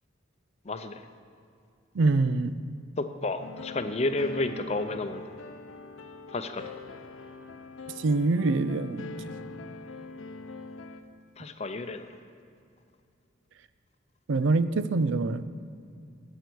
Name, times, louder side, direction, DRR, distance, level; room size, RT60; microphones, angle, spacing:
voice 1, 0.7-1.1 3.0-5.3 6.3-6.6 11.4-12.1, left 2 dB, 30° left, 9 dB, 0.5 m, -31 dB
voice 2, 1.9-2.6 8.0-9.1 14.3-15.4, right 3 dB, 70° right, 13 dB, 0.4 m, -25 dB
sound 1, 3.4-11.0, left 2 dB, 85° left, 0.7 m, -43 dB
11.5 x 8.2 x 6.2 m, 2.4 s
head